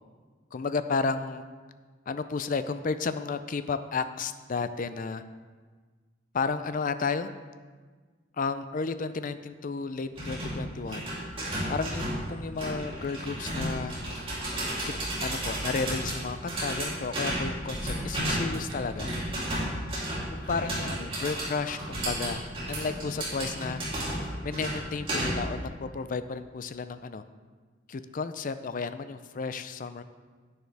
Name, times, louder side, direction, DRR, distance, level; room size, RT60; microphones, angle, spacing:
voice 1, 0.5-1.5 2.1-5.2 6.3-7.3 8.4-11.0 11.7-13.9 14.8-14.9 15.2-19.1 20.3-23.8 24.4-27.2 27.9-30.0, left 4 dB, 45° left, 11 dB, 0.4 m, -32 dB
sound 1, 10.2-25.6, right 1 dB, 30° right, 3.0 m, -33 dB
10.5 x 9.6 x 3.4 m, 1.5 s
head